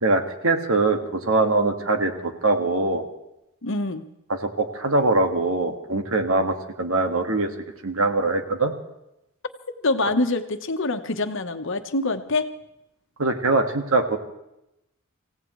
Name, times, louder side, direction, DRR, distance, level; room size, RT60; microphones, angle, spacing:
voice 1, 0.0-3.1 4.3-7.5 7.8-8.7 13.2-14.2, right 2 dB, 75° right, 5 dB, 1.8 m, -22 dB
voice 2, 3.6-4.0 9.8-12.5, left 2 dB, 65° left, 8 dB, 1.2 m, -25 dB
26.5 x 16.5 x 3.2 m, 0.87 s
head